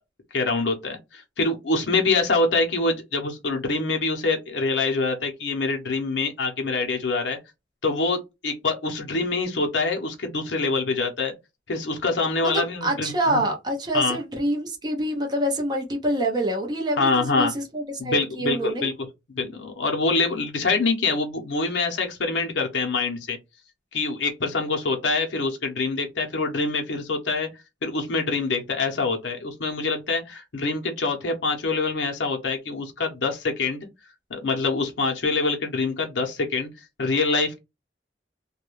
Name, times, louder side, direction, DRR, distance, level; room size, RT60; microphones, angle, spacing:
voice 1, 0.3-7.4 7.8-11.3 11.7-13.4 13.9-14.2 17.0-17.5 18.0-18.9 19.3-23.4 23.9-27.5 27.8-33.8 34.3-36.7 37.0-37.6, left 3 dB, 90° left, 0.7 m, -25 dB
voice 2, 12.4-18.9, right 1 dB, 25° right, 0.6 m, -26 dB
2.3 x 2.1 x 3.0 m
head